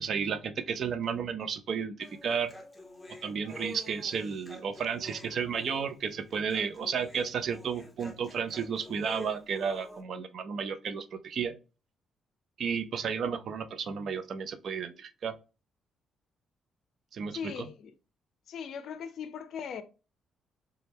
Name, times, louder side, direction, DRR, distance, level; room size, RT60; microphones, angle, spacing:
voice 1, 0.0-1.9 2.2-2.5 3.2-11.5 12.6-15.3 17.1-17.7, right 6 dB, 60° right, 0.5 m, -33 dB
Human voice, 2.0-10.0, left 1 dB, 10° left, 0.9 m, -48 dB
voice 2, 17.3-17.9 18.5-19.8, left 7 dB, 65° left, 0.4 m, -39 dB
4.0 x 2.2 x 3.4 m
cardioid pair, 90°, 0 cm